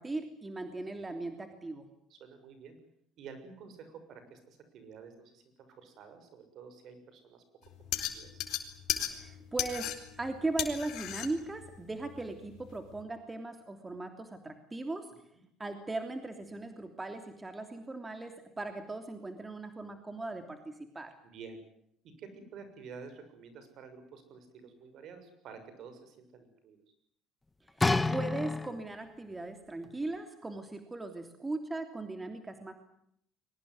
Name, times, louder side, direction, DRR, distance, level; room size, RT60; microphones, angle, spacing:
voice 1, 0.0-1.9 9.0-15.1 15.6-21.1 27.8-32.7, right 2 dB, 15° right, 7 dB, 3.1 m, -38 dB
voice 2, 2.1-2.7 3.2-8.4 15.3-15.4 21.2-21.6 22.2-26.8, right 5 dB, 60° right, 9 dB, 6.7 m, -50 dB
sound 1, 7.7-13.0, left 12 dB, 70° left, 4.2 m, -37 dB
sound 2, 27.8-29.1 29.8-29.9, left 3 dB, 15° left, 1.4 m, -29 dB
23.5 x 19.5 x 9.6 m, 0.70 s
supercardioid pair, 100°, 0 cm